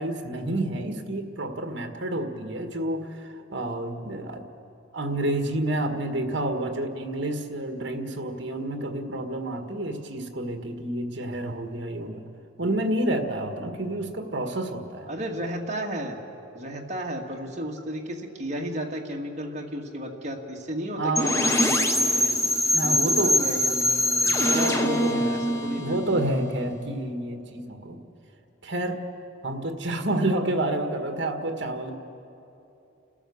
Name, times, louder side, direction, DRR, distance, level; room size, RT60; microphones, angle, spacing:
voice 1, 0.0-4.4 4.9-12.2 12.6-15.1 21.0-21.4 22.7-23.6 24.3-25.5 25.8-28.0 28.6-29.0 29.4-31.9, right 1 dB, 55° right, 5 dB, 1.7 m, -29 dB
voice 2, 15.1-16.2 16.5-22.3 22.8-26.0, equal, 35° right, -1 dB, 2.0 m, -33 dB
sound 1, 21.2-27.0, left 1 dB, 15° left, 0.9 m, -24 dB
29.5 x 13.0 x 7.1 m, 2.9 s
head